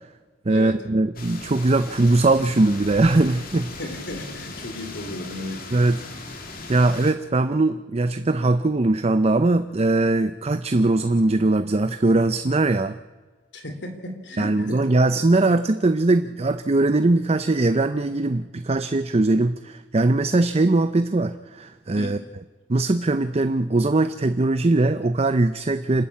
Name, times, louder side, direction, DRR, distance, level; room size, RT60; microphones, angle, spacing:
voice 1, 0.5-3.8 5.7-6.0 6.7-13.0 14.4-22.2 22.7-26.0, right 2 dB, 35° right, 11 dB, 0.6 m, -20 dB
sound 1, 1.2-7.1, left 3 dB, 55° left, 2.6 m, -38 dB
voice 2, 3.8-5.6 13.5-14.9 22.0-22.1, left 1 dB, 70° left, 6 dB, 3.4 m, -34 dB
27.0 x 13.0 x 8.6 m, 1.3 s
head